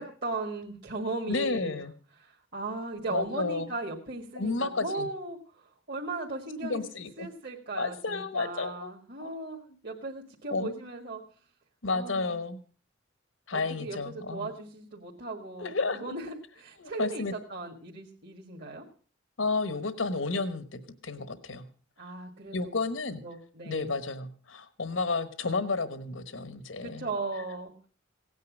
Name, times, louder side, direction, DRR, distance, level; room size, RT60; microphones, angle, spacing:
voice 1, 0.0-1.8 2.2-6.8 7.2-11.2 11.9-12.3 13.5-18.8 22.0-22.6 23.2-23.9 26.8-27.9, right 3 dB, 60° right, -1 dB, 1.8 m, -37 dB
voice 2, 1.3-1.9 3.1-3.7 4.4-5.1 6.6-7.3 7.8-8.9 9.2-9.4 10.5-10.7 11.8-12.6 13.5-14.5 15.6-16.2 16.8-17.3 19.4-21.6 22.5-23.2 23.6-27.1, left 3 dB, 85° left, 12 dB, 1.2 m, -31 dB
17.0 x 9.4 x 6.3 m, 0.42 s
head